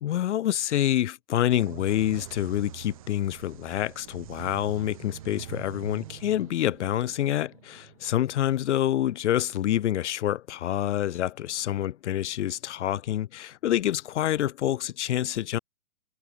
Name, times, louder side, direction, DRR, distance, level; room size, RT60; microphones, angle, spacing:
voice 1, 0.0-15.6, left 12 dB, 60° left, 0.6 m, -27 dB
sound 1, 1.5-9.1, right 14 dB, 25° right, 0.6 m, -45 dB
hypercardioid pair, 155°, 39 cm